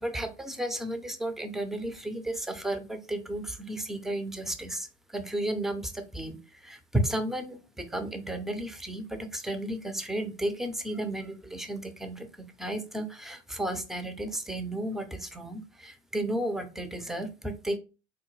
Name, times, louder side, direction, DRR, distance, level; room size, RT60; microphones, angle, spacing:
voice 1, 0.0-4.9 5.1-6.4 6.6-17.8, right 1 dB, ahead, 0.3 m, -33 dB
3.7 x 2.1 x 3.0 m
hypercardioid pair, 75°, 35 cm